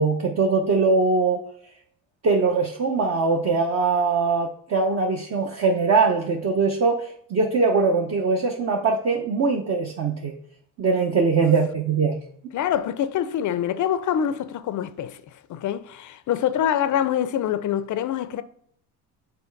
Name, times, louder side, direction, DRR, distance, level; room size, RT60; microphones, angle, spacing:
voice 1, 0.0-1.4 2.2-10.3 10.8-12.2, right 4 dB, 35° right, 0.9 m, -22 dB
voice 2, 12.5-15.2 15.5-18.4, left 10 dB, 45° left, 0.6 m, -25 dB
7.0 x 3.2 x 4.5 m
supercardioid pair, 90°, 44 cm